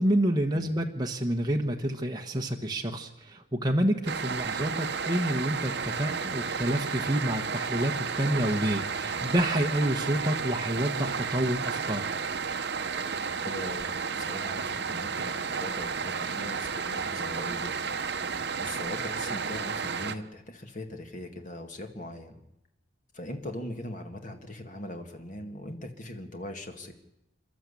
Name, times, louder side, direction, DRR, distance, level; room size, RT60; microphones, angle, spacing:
voice 1, 0.0-12.0, right 1 dB, 20° right, 2 dB, 1.2 m, -28 dB
sound 1, 4.1-20.2, right 5 dB, 55° right, 0.9 m, -32 dB
voice 2, 13.4-13.9 14.2-18.0 18.6-22.4 23.1-26.9, left 1 dB, 40° left, 5 dB, 2.1 m, -40 dB
28.0 x 12.0 x 8.4 m, 0.89 s
head